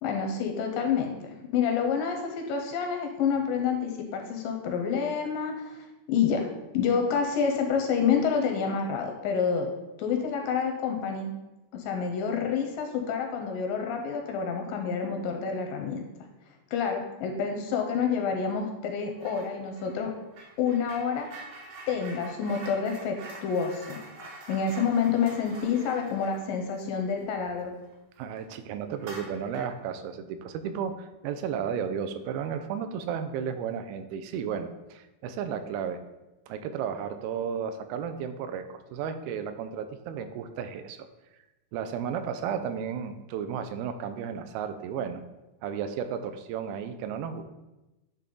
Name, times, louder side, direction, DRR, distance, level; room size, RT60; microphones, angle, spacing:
voice 1, 0.0-6.5 6.7-9.7 10.0-11.3 11.7-16.0 16.7-20.1 20.6-21.3 21.9-23.2 23.4-24.0 24.5-27.7, left 6 dB, 80° left, 3 dB, 2.1 m, -28 dB
sound 1, 19.2-19.5 19.8-27.9 28.3-28.4 29.0-29.8, right 2 dB, 65° right, 2.5 m, -46 dB
voice 2, 28.2-36.0 36.5-41.0 41.7-45.2 45.6-47.4, right 7 dB, 85° right, 9 dB, 2.4 m, -33 dB
9.8 x 3.5 x 3.8 m, 1.0 s
omnidirectional pair, 4.3 m